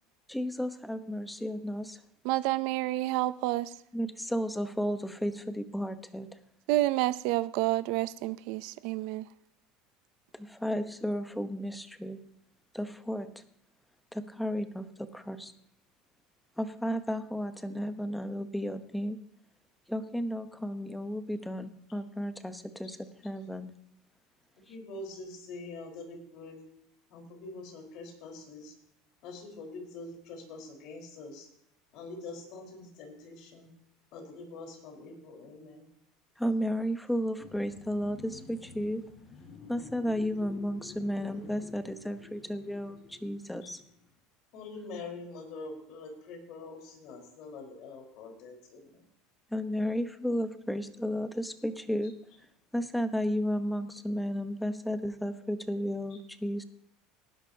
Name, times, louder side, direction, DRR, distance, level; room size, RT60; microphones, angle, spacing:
voice 1, 0.3-2.0 3.9-6.3 10.3-12.2 12.7-13.3 14.1-15.5 16.6-19.2 19.9-23.7 36.4-39.0 39.7-43.8 49.5-52.1 52.7-56.6, equal, 5° left, 1.0 m, -33 dB
voice 2, 2.2-3.7 6.7-9.2, right 17 dB, 70° right, 0.5 m, -29 dB
voice 3, 24.7-26.6 27.1-28.7 29.2-31.5 31.9-33.7 34.1-35.9 43.6-43.7 44.5-49.0, left 3 dB, 60° left, 4.5 m, -44 dB
sound 1, 37.4-44.0, left 4 dB, 45° left, 4.8 m, -50 dB
18.5 x 11.0 x 2.8 m
supercardioid pair, 130°, 0 cm